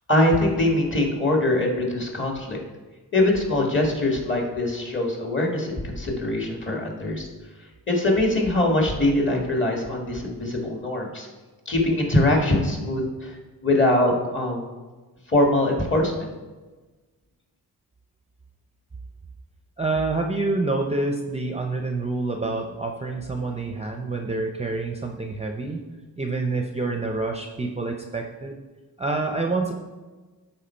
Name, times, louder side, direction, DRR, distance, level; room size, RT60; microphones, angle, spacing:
voice 1, 0.1-2.6 3.1-7.3 7.9-11.3 11.6-13.3 13.6-14.7 15.3-16.3, left 1 dB, 30° left, 0 dB, 1.8 m, -22 dB
voice 2, 19.8-25.8 26.2-28.6 29.0-29.7, right 3 dB, 20° right, 3 dB, 0.6 m, -27 dB
11.5 x 4.5 x 4.4 m, 1.3 s
wide cardioid pair, 110°, 36 cm